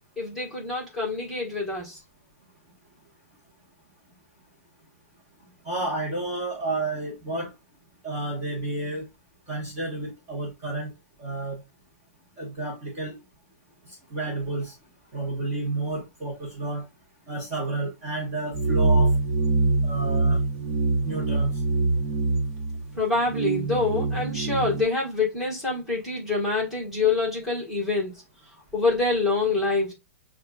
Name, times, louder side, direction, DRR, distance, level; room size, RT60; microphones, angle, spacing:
voice 1, 0.2-2.0 22.9-28.2 28.7-29.9, left 3 dB, 5° right, 1.4 m, -26 dB
voice 2, 5.6-7.5 8.0-9.1 9.5-10.9 11.2-11.6 12.4-13.2 14.1-14.7 15.1-16.8 17.3-19.1 19.8-20.4 21.0-21.5, right 2 dB, 20° right, 1.1 m, -30 dB
sound 1, 18.5-24.8, right 3 dB, 45° right, 1.2 m, -24 dB
6.8 x 2.4 x 2.4 m
hypercardioid pair, 170°, 8 cm